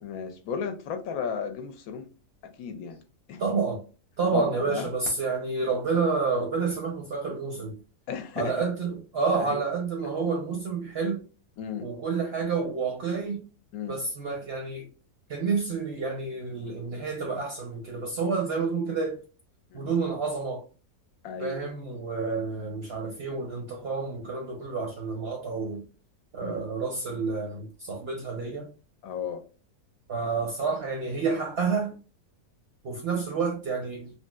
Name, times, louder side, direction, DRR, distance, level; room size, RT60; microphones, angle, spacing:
voice 1, 0.0-2.1 2.6-3.0 3.3-3.4 4.3-4.9 8.1-8.5 9.3-9.6 11.6-11.9 13.7-14.0 19.7-19.9 21.2-21.7 26.4-26.6 29.0-29.4, left 6 dB, 70° left, 1.0 m, -34 dB
voice 2, 3.4-3.8 4.2-7.8 8.4-11.2 11.8-13.4 13.9-14.9 15.3-19.2 19.7-20.6 21.4-25.8 26.3-28.7 30.1-32.0 32.8-34.1, right 4 dB, 60° right, 0.7 m, -29 dB
3.1 x 2.6 x 2.2 m
omnidirectional pair, 1.6 m